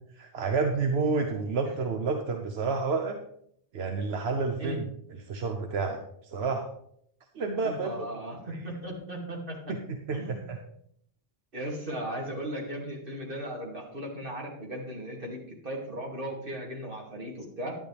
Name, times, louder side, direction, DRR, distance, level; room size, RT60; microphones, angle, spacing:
voice 1, 0.1-3.2 3.7-4.8 5.3-6.7 7.3-8.1 9.7-9.8 10.1-10.6, right 4 dB, 85° right, 4 dB, 1.2 m, -29 dB
voice 2, 7.6-9.7 10.1-10.5 11.5-17.8, right 1 dB, 60° right, -2 dB, 2.7 m, -37 dB
11.5 x 11.0 x 3.4 m, 0.68 s
omnidirectional pair, 1.0 m